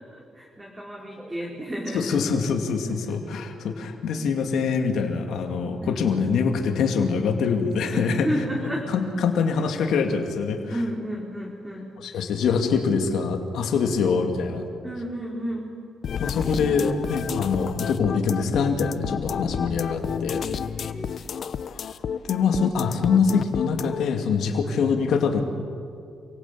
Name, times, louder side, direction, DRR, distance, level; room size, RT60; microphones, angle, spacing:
voice 1, 0.0-2.2 2.9-3.4 5.8-6.3 7.9-8.9 10.7-11.9 13.9-14.1 14.8-15.7 16.6-16.8 20.7-21.1 22.6-22.7 24.6-24.8, equal, 15° right, -3 dB, 4.5 m, -32 dB
voice 2, 1.9-8.3 8.9-10.7 12.0-14.6 16.2-20.4 22.3-25.4, left 5 dB, 75° left, 3 dB, 2.6 m, -24 dB
sound 1, 16.0-24.0, left 7 dB, 60° left, 0.8 m, -31 dB
28.0 x 17.5 x 8.4 m, 2.4 s
cardioid pair, 75°, 0 cm